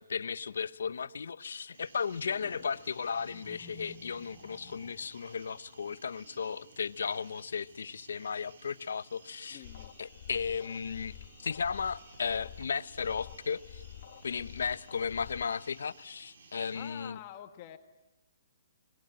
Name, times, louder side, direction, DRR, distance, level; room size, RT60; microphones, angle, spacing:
voice 1, 0.0-9.6 10.0-13.8 14.2-17.2, left 6 dB, 80° left, 0.8 m, -35 dB
sound 1, 1.7-16.9, right 4 dB, 65° right, 4.1 m, -57 dB
sound 2, 2.1-5.2, left 1 dB, 25° right, 7.0 m, -54 dB
voice 2, 9.5-9.9 16.7-17.8, left 11 dB, 35° left, 1.4 m, -47 dB
sound 3, 9.6-15.6, left 11 dB, 50° left, 1.2 m, -49 dB
24.0 x 21.5 x 8.9 m
hypercardioid pair, 155°, 0 cm